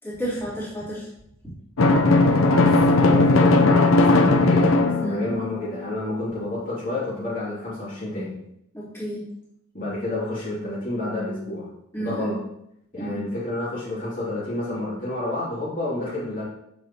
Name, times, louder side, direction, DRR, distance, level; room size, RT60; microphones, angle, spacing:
voice 1, 0.0-1.1 5.0-5.2 8.7-9.2 11.9-12.3 13.0-13.2, right 1 dB, 10° left, -9 dB, 3.5 m, -31 dB
Drum, 1.8-5.6, left 2 dB, 85° left, 0.8 m, -17 dB
voice 2, 2.5-8.3 9.7-11.7 12.0-12.4 12.9-16.4, left 2 dB, 40° left, -9 dB, 2.9 m, -29 dB
8.7 x 7.3 x 3.0 m, 0.78 s
head